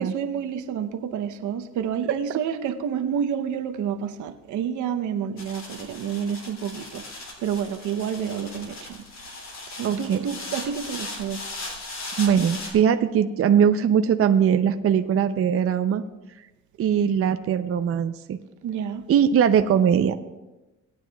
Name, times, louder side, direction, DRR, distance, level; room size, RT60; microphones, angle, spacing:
voice 1, 0.0-7.0 7.4-9.0 9.8-11.4 18.6-19.0, right 8 dB, 80° right, 7 dB, 0.8 m, -29 dB
sound 1, 5.4-12.7, left 2 dB, 60° left, 2.9 m, -38 dB
voice 2, 9.8-10.2 12.2-16.0 16.8-18.4 19.1-20.2, right 8 dB, 50° right, 8 dB, 0.6 m, -21 dB
19.0 x 9.5 x 2.3 m, 1.1 s
cardioid pair, 90°, 30 cm